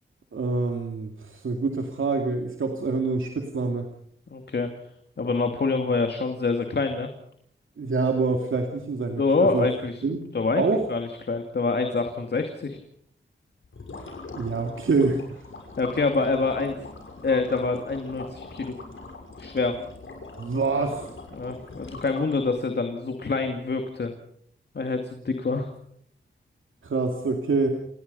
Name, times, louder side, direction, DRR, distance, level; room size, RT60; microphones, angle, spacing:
voice 1, 0.3-3.9 7.8-9.7 10.0-10.3 10.5-10.8 14.4-15.4 20.4-21.1 26.8-27.7, right 3 dB, 80° right, 3 dB, 2.5 m, -26 dB
voice 2, 4.3-4.7 5.2-7.1 9.2-10.0 10.3-10.6 10.9-12.8 15.8-16.8 17.2-18.8 19.4-19.8 21.3-24.1 24.7-25.7, left 3 dB, 55° left, 5 dB, 2.4 m, -26 dB
sound 1, 13.6-22.6, left 3 dB, 80° left, 6.1 m, -42 dB
29.0 x 19.0 x 5.5 m, 0.67 s
wide cardioid pair, 115°, 20 cm